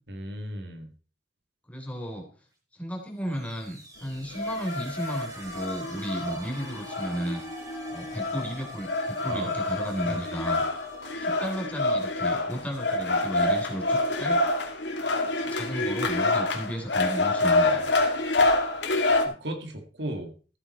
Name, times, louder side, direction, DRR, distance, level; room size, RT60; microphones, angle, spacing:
voice 1, 0.1-0.9 9.3-9.5 10.0-10.2 19.2-20.3, right 1 dB, 70° right, 5 dB, 2.0 m, -36 dB
voice 2, 1.7-2.2 2.8-7.4 7.9-10.6 11.2-14.4 15.5-17.8, equal, 10° left, 1 dB, 3.4 m, -34 dB
sound 1, 3.2-13.0, equal, 20° right, 2.9 m, -45 dB
sound 2, 4.3-19.2, left 2 dB, 85° left, 2.4 m, -27 dB
14.5 x 8.8 x 4.3 m, 0.37 s
head